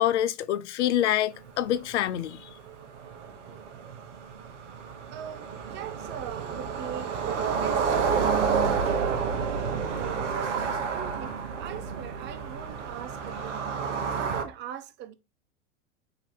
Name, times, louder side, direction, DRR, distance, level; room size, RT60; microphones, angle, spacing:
voice 1, 0.0-2.5, left 12 dB, 70° left, 0.5 m, -26 dB
sound 1, 1.5-1.6 1.9-2.0 2.2-14.4, right 6 dB, 75° right, 1.1 m, -30 dB
voice 2, 5.1-8.2 9.0-9.3 9.9-13.7 14.1-15.1, right 10 dB, 30° right, 0.5 m, -41 dB
4.0 x 2.7 x 4.2 m
hypercardioid pair, 100°, 36 cm